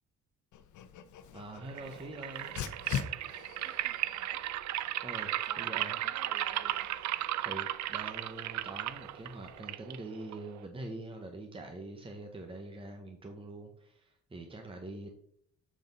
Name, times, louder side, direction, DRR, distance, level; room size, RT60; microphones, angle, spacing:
Dog, 0.5-9.6, left 8 dB, 75° left, 0.8 m, -45 dB
voice 1, 1.3-2.5 4.8-5.9 7.4-15.1, right 2 dB, 20° right, 3 dB, 1.0 m, -44 dB
sound 1, 1.6-10.7, right 14 dB, 65° right, 0.4 m, -36 dB
voice 2, 3.6-4.4 5.4-5.7 6.0-7.0, right 3 dB, 40° right, 5 dB, 1.5 m, -53 dB
7.4 x 3.8 x 5.3 m, 0.66 s
cardioid pair, 90°, 30 cm